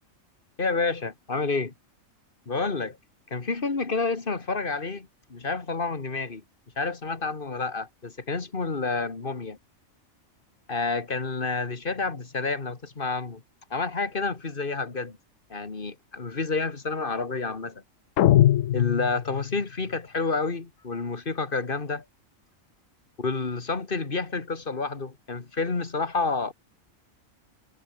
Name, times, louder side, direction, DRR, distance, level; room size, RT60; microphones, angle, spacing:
voice 1, 0.6-1.7 2.5-3.0 3.3-6.4 6.8-9.6 10.7-13.4 13.7-15.2 15.5-17.8 18.7-22.0 23.2-26.5, left 4 dB, 40° left, 2.1 m, -29 dB
sound 1, 18.2-19.6, left 12 dB, 75° left, 1.0 m, -21 dB
omnidirectional pair, 1.4 m